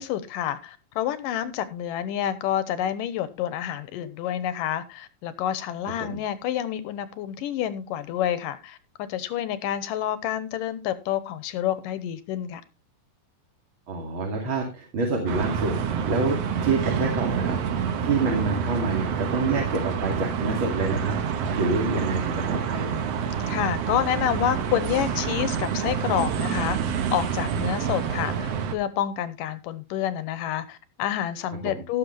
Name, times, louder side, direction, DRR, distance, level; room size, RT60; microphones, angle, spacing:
voice 1, 0.0-12.6 23.5-26.8 27.1-32.0, left 11 dB, 80° left, 2.5 m, -28 dB
voice 2, 13.9-15.8 16.0-21.2 21.5-23.0 31.6-31.8, right 3 dB, 40° right, 2.8 m, -27 dB
sound 1, 15.3-28.7, right 7 dB, 60° right, 1.8 m, -28 dB
16.5 x 7.5 x 3.2 m
omnidirectional pair, 3.9 m